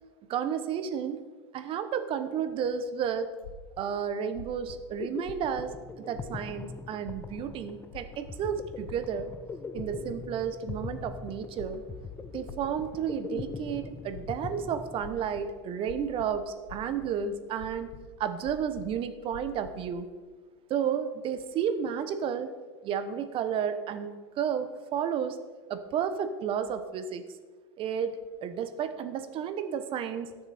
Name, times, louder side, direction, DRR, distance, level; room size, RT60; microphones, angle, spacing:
voice 1, 0.3-1.2 1.5-3.3 3.8-5.7 6.0-9.3 9.7-11.8 12.3-17.9 18.2-20.1 20.7-22.5 22.8-25.4 25.7-27.2 27.8-30.3, right 8 dB, 35° right, 10 dB, 1.2 m, -32 dB
sound 1, 3.4-3.9 4.3-4.8 5.2-5.8 6.2-6.6 7.1-7.5 7.9-8.3 8.8-9.3 9.7-10.3 10.6-11.1 11.6-12.1 12.5-12.9 13.3-14.5 15.0-15.4 15.9-16.4 16.7-17.1 17.6-18.0 18.4-19.0 19.3-19.7, left 5 dB, 80° left, 1.4 m, -45 dB
sound 2, 4.7-15.5, left 5 dB, 15° left, 0.5 m, -42 dB
20.0 x 6.8 x 4.4 m, 1.4 s
hypercardioid pair, 120°, 15 cm